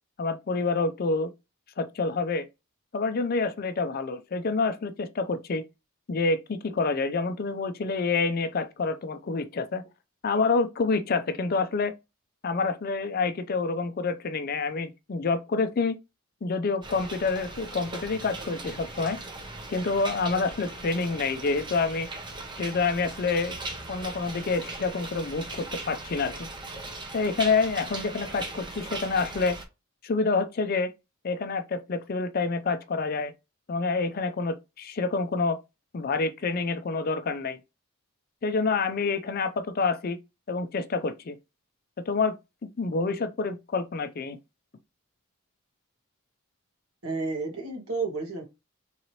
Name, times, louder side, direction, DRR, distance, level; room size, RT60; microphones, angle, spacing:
voice 1, 0.2-1.3 1.8-2.5 2.9-5.6 6.1-9.8 10.2-11.9 12.4-16.0 16.4-19.2 19.7-22.1 22.6-23.6 23.9-26.5 27.1-29.6 30.0-30.9 31.2-33.3 33.7-35.6 35.9-37.6 38.4-40.2 40.5-41.4 42.1-42.4 42.8-44.4, left 4 dB, 45° left, 0.4 m, -27 dB
sound 1, 16.8-29.6, right 2 dB, 20° right, 0.7 m, -39 dB
voice 2, 47.0-48.4, right 3 dB, 85° right, 1.6 m, -31 dB
3.8 x 2.8 x 3.0 m
head